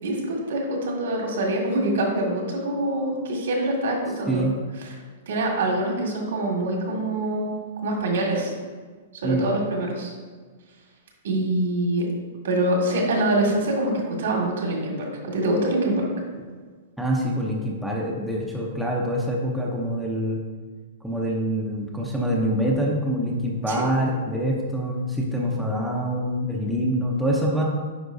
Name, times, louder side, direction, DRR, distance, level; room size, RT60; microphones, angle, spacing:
voice 1, 0.0-4.4 4.8-5.0 5.3-7.5 7.8-8.5 9.2-10.1 11.2-12.1 12.4-16.1 23.7-23.8, right 1 dB, 75° right, 0 dB, 1.9 m, -25 dB
voice 2, 17.0-20.4 21.0-27.6, equal, ahead, -4 dB, 0.7 m, -25 dB
9.4 x 5.3 x 2.7 m, 1.5 s
hypercardioid pair, 170°, 0 cm